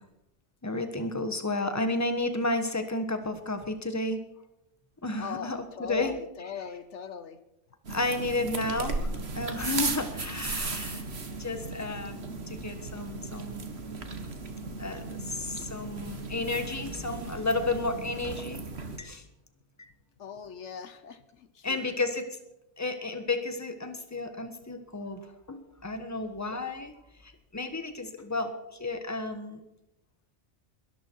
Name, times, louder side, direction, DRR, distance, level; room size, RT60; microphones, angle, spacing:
voice 1, 0.6-4.2 5.0-6.1 7.9-11.0 11.4-13.7 14.8-19.2 21.6-22.2 22.8-25.2 25.5-26.9 27.2-28.5 28.8-29.6, left 2 dB, 15° left, 8 dB, 1.4 m, -32 dB
voice 2, 5.2-7.4 20.2-22.0, left 7 dB, 75° left, 12 dB, 1.2 m, -40 dB
sound 1, 7.8-19.0, right 3 dB, 60° right, 1.9 m, -36 dB
21.5 x 13.0 x 4.6 m, 0.89 s
omnidirectional pair, 1.2 m